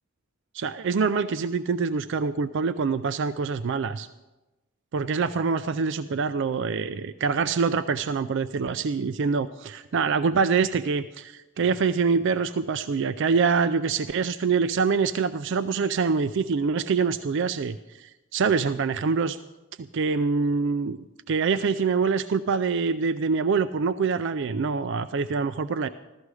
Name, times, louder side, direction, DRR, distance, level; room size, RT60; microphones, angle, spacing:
voice 1, 0.5-4.1 4.9-19.4 19.8-21.0 21.3-25.9, right 5 dB, 65° right, 12 dB, 0.4 m, -25 dB
15.5 x 13.0 x 4.8 m, 1.1 s
head